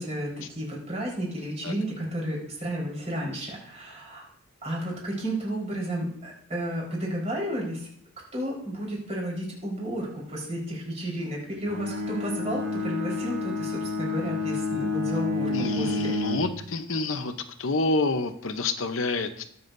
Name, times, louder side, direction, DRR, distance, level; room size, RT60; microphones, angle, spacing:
voice 1, 0.0-4.3 4.6-7.9 8.3-16.1, right 1 dB, 30° right, -4 dB, 4.4 m, -32 dB
Bowed string instrument, 11.7-16.6, left 3 dB, 55° right, 5.1 m, -29 dB
voice 2, 15.5-17.3 17.6-19.4, left 3 dB, 70° left, 8 dB, 0.8 m, -28 dB
20.0 x 7.1 x 2.6 m, 0.64 s
head